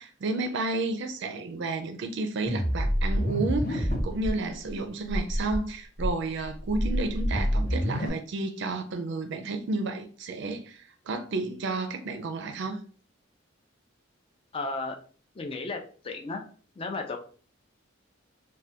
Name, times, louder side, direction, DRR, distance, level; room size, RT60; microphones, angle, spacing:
voice 1, 0.0-12.8, right 3 dB, 60° right, 0.4 m, -31 dB
sound 1, 2.5-4.3 4.7-4.8 5.1-5.6 6.0-8.1, equal, 50° left, 0.8 m, -27 dB
voice 2, 14.5-15.0 15.4-16.4 16.8-17.2, left 3 dB, 25° left, 0.4 m, -34 dB
3.2 x 2.2 x 2.8 m
head